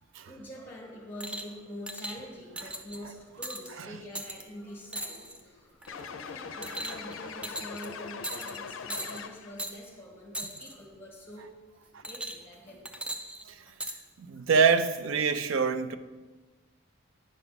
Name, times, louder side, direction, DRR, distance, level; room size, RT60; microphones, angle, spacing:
voice 1, 0.3-11.5 11.8-12.8 13.6-14.5, equal, 10° left, 1.5 m, -46 dB
sound 1, 1.2-1.5 1.9-2.2 2.6-3.0 3.4-3.7 4.2-4.4 4.9-5.4 5.8-6.1 6.6-7.1 7.4-7.9 8.2-8.6 8.9-9.2 9.6-9.7 10.3-10.7 12.0-12.5 12.9-14.0 14.8-14.9, right 1 dB, 5° right, 0.4 m, -38 dB
sound 2, 5.9-9.7, left 5 dB, 70° left, 0.5 m, -41 dB
voice 2, 14.2-16.0, right 5 dB, 70° right, 0.4 m, -25 dB
9.9 x 5.8 x 4.0 m
head